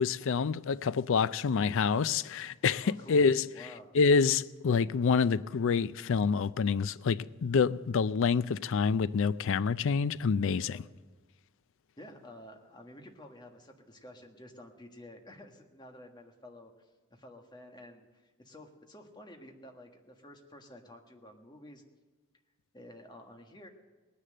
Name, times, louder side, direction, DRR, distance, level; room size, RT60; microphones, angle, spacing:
voice 1, 0.0-3.4 3.9-10.8, left 5 dB, 65° left, 0.4 m, -27 dB
voice 2, 2.8-3.3 3.5-3.9 10.6-10.8 12.0-21.8 22.7-23.7, left 1 dB, 20° left, 1.5 m, -51 dB
19.0 x 10.0 x 7.7 m
head